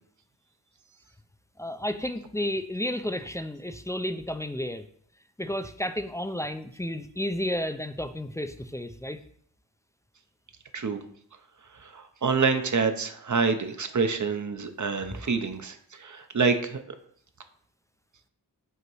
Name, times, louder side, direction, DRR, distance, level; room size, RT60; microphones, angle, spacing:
voice 1, 1.6-4.8 5.4-9.2, left 1 dB, 10° left, 8 dB, 0.4 m, -32 dB
voice 2, 11.9-15.7 16.0-16.8, right 5 dB, 45° right, 7 dB, 0.7 m, -26 dB
8.0 x 2.9 x 4.6 m, 0.63 s
wide cardioid pair, 90°, 41 cm